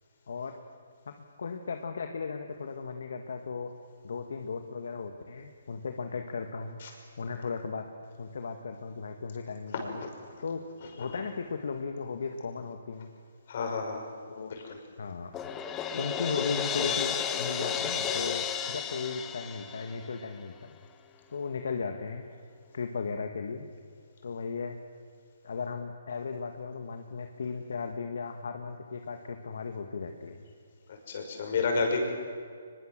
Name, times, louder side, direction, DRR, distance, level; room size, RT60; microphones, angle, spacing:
voice 1, 0.3-0.6 1.4-3.7 4.0-6.8 7.2-7.9 8.2-10.0 10.4-10.6 11.0-13.1 14.3-14.5 15.0-15.3 15.9-20.8 21.3-22.3 22.7-23.7 24.2-24.8 25.4-30.4, left 5 dB, 70° left, 5 dB, 1.7 m, -36 dB
voice 2, 13.5-14.1 14.7-14.8 31.1-32.0, left 4 dB, 50° left, 3 dB, 6.0 m, -30 dB
Crash cymbal, 15.3-20.3, left 8 dB, 15° left, 1.2 m, -32 dB
23.5 x 22.0 x 7.6 m, 2.1 s
hypercardioid pair, 155°, 0 cm